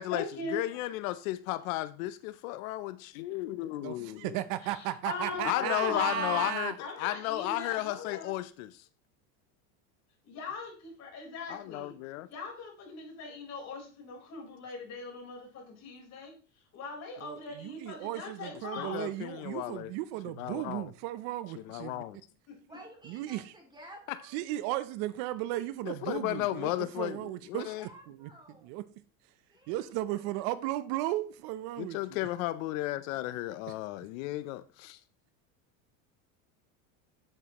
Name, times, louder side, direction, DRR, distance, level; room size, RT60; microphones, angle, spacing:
voice 1, 0.0-0.8 4.6-6.5 6.8-8.3 10.2-11.9 12.3-16.3 16.7-19.1 22.5-22.8, left 3 dB, 40° left, 4.1 m, -40 dB
voice 2, 0.5-4.4 5.4-6.7 7.0-8.8 11.5-12.3 18.8-19.9 20.4-20.9 21.7-22.2 24.1-24.2 25.9-27.9 31.8-35.0, left 16 dB, 85° left, 0.6 m, -34 dB
voice 3, 3.8-6.8 17.2-22.0 23.1-23.5 24.3-26.7 27.0-27.7 28.1-28.3 28.6-28.8 29.7-32.2, right 15 dB, 60° right, 0.7 m, -35 dB
voice 4, 22.7-24.4 27.7-28.8 29.5-30.5, right 1 dB, 10° right, 2.3 m, -53 dB
8.9 x 8.1 x 2.9 m
supercardioid pair, 135°, 40 cm